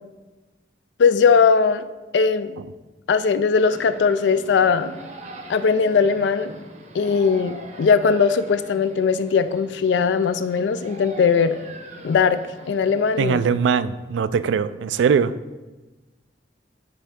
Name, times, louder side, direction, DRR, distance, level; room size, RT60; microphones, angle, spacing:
voice 1, 1.0-1.8 2.1-2.5 3.1-4.9 5.5-6.5 6.9-11.6 12.0-12.4 12.7-13.4, left 5 dB, 75° left, 12 dB, 0.4 m, -19 dB
sound 1, 3.5-13.2, right 2 dB, 45° right, 0.7 m, -42 dB
voice 2, 13.2-15.3, right 6 dB, 85° right, 15 dB, 0.3 m, -21 dB
9.7 x 3.4 x 3.6 m, 1.2 s
head